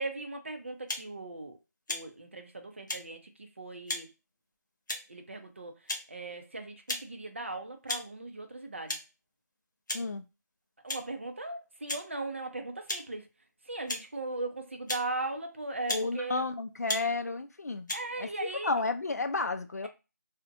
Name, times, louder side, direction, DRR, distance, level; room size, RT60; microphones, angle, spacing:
voice 1, 0.0-1.6 1.9-3.2 3.6-4.1 5.1-5.8 6.1-9.0 10.8-13.2 13.7-16.4 17.9-18.7, right 2 dB, 40° right, 0.5 m, -38 dB
sound 1, 0.9-1.1 1.9-2.0 2.9-3.0 3.9-4.0 4.9-5.1 5.9-6.0 6.9-7.0 7.9-8.1 8.9-9.0 9.9-10.1 10.9-11.0 11.9-12.0 12.9-13.0 13.9-14.0 14.9-15.0 15.9-16.1 16.9-17.0 17.9-18.0, left 2 dB, 90° left, 0.8 m, -34 dB
voice 2, 15.9-19.9, left 3 dB, 60° left, 0.4 m, -32 dB
2.6 x 2.1 x 2.6 m
figure-of-eight pair, 175°, 10 cm